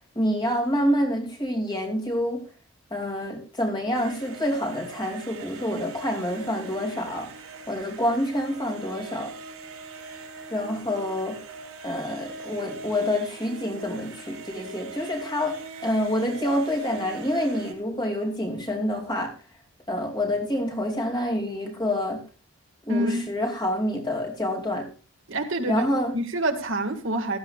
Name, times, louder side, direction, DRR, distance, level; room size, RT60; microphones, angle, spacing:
voice 1, 0.1-2.4 2.9-9.3 10.5-11.4 11.8-19.4 19.9-22.2 22.8-24.9 25.6-26.2, left 1 dB, 20° left, 2.6 m, -27 dB
sound 1, 3.9-17.7, right 3 dB, 90° right, 3.7 m, -41 dB
voice 2, 22.9-23.2 25.3-25.9 26.1-27.4, right 1 dB, 60° right, 1.9 m, -26 dB
15.5 x 14.0 x 2.4 m
head